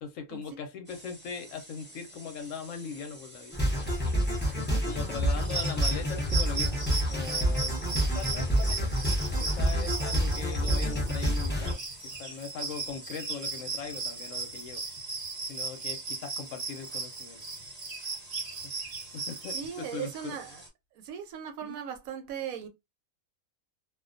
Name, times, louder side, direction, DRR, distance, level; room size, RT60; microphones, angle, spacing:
voice 1, 0.0-3.6 4.6-7.8 8.1-8.9 9.4-14.8 15.5-17.4 19.1-20.4 21.6-21.8, left 6 dB, 70° left, 0.9 m, -40 dB
sound 1, 0.9-20.7, right 1 dB, 10° right, 0.9 m, -50 dB
sound 2, 3.5-11.7, equal, 15° left, 0.4 m, -28 dB
voice 2, 5.0-5.6 19.5-20.6 20.9-22.7, right 8 dB, 75° right, 1.0 m, -39 dB
sound 3, 5.4-19.7, right 4 dB, 45° right, 0.6 m, -36 dB
2.4 x 2.1 x 2.5 m
omnidirectional pair, 1.5 m